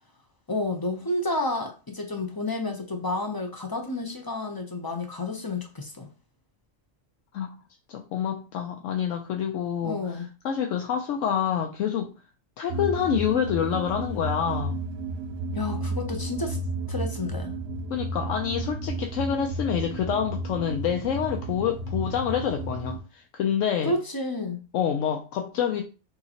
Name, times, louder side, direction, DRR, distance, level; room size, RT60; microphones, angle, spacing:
voice 1, 0.5-6.1 9.8-10.3 15.5-16.6 16.9-17.6 23.8-24.6, left 2 dB, 25° left, 0.5 m, -30 dB
voice 2, 7.9-12.1 12.6-14.8 17.9-23.9 24.7-25.8, left 8 dB, 75° left, 0.9 m, -27 dB
sound 1, 12.7-23.0, right 2 dB, 55° right, 1.0 m, -32 dB
6.5 x 2.9 x 2.8 m
omnidirectional pair, 1.3 m